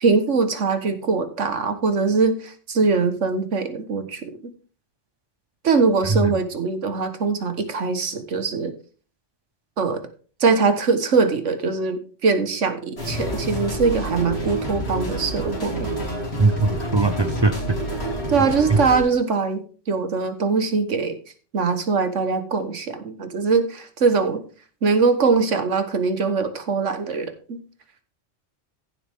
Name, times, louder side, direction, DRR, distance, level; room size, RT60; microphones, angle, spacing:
voice 1, 0.0-4.3 5.6-8.7 9.8-10.0 10.4-15.9 18.3-21.2 21.5-24.4 24.8-27.6, right 4 dB, 80° right, 9 dB, 1.7 m, -22 dB
sound 1, 13.0-19.0, right 1 dB, 55° left, 3.7 m, -28 dB
voice 2, 16.4-17.8 18.7-18.8, right 3 dB, 30° right, 11 dB, 0.5 m, -20 dB
15.0 x 7.5 x 3.6 m, 0.39 s
omnidirectional pair, 1.2 m